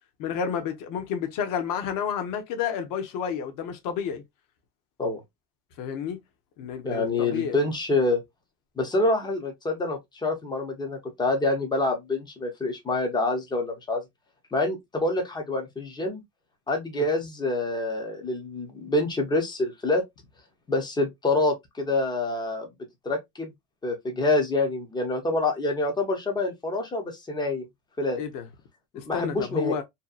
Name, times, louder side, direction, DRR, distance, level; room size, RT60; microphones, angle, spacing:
voice 1, 0.2-4.2 5.8-6.2 6.6-7.6 16.9-17.1 28.2-28.5 28.9-29.8, left 8 dB, 45° left, 0.7 m, -30 dB
voice 2, 6.8-8.2 8.8-14.0 14.5-16.2 16.7-20.0 20.7-22.7 23.0-23.5 23.8-27.7 28.0-28.2 28.9-29.8, left 2 dB, 10° left, 0.5 m, -26 dB
2.7 x 2.2 x 2.3 m
supercardioid pair, 130°, 47 cm